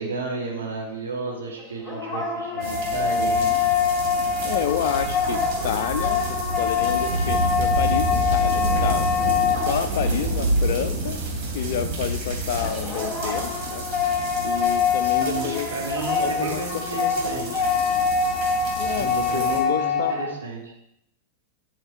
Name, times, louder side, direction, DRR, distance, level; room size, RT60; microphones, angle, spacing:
voice 1, 0.0-3.5 10.0-10.5 14.9-17.6 18.8-20.7, right 3 dB, 70° right, -2 dB, 2.6 m, -32 dB
sound 1, 1.6-10.3 12.6-20.3, left 6 dB, 5° left, 2.1 m, -25 dB
sound 2, 2.6-19.6, right 2 dB, 45° right, 3.1 m, -29 dB
voice 2, 4.4-9.1 9.7-11.2 11.5-13.9 14.4-15.7 16.2-16.6 16.9-17.5 18.8-20.2, left 9 dB, 55° left, 9 dB, 0.4 m, -29 dB
11.0 x 6.6 x 4.6 m, 0.80 s
figure-of-eight pair, 90°, 0 cm